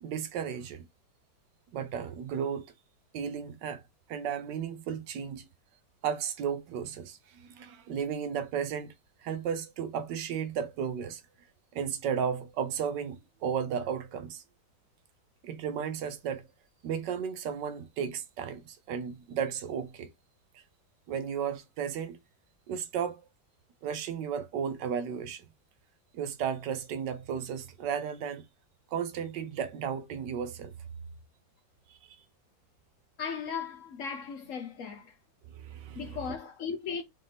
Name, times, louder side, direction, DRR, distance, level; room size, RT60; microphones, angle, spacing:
voice 1, 0.0-0.9 1.7-2.7 3.1-3.8 4.1-5.5 6.0-8.9 9.2-11.2 11.7-14.4 15.4-16.5 16.8-20.1 20.5-20.6 21.1-22.2 22.7-23.2 23.8-25.5 26.1-28.5 28.9-30.7 31.9-32.2 35.5-36.4, right 7 dB, 70° right, 1.2 m, -34 dB
voice 2, 33.2-35.1 36.0-37.0, left 6 dB, 70° left, 0.7 m, -37 dB
5.0 x 2.8 x 3.4 m
omnidirectional pair, 2.1 m